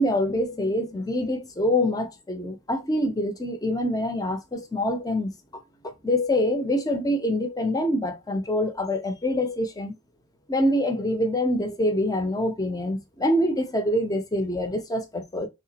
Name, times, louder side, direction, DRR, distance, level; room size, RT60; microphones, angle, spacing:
voice 1, 0.0-5.3 6.0-9.9 10.5-15.5, left 1 dB, 20° left, 0.6 m, -25 dB
3.6 x 2.9 x 2.8 m
head